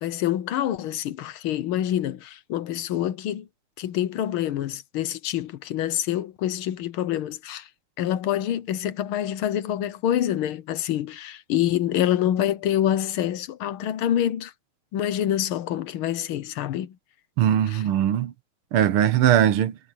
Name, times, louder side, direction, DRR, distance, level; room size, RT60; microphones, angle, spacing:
voice 1, 0.0-3.5 3.8-7.7 8.0-14.5 14.9-17.0 17.7-17.8, left 11 dB, 80° left, 1.7 m, -26 dB
voice 2, 17.4-18.3 18.7-19.8, right 10 dB, 80° right, 1.8 m, -20 dB
omnidirectional pair, 2.4 m